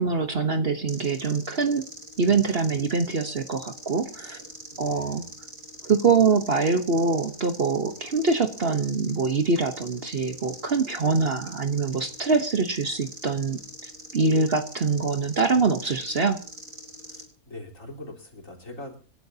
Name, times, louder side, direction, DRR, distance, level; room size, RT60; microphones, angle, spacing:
voice 1, 0.0-1.8 2.2-4.4 4.8-5.2 5.8-13.6 14.1-16.4, right 4 dB, 45° right, 8 dB, 1.2 m, -24 dB
sound 1, 0.9-17.2, right 2 dB, 60° right, 3.9 m, -43 dB
voice 2, 4.7-5.2 17.0-19.0, left 2 dB, 60° left, -1 dB, 4.4 m, -43 dB
27.0 x 11.5 x 2.8 m, 0.40 s
omnidirectional pair, 1.6 m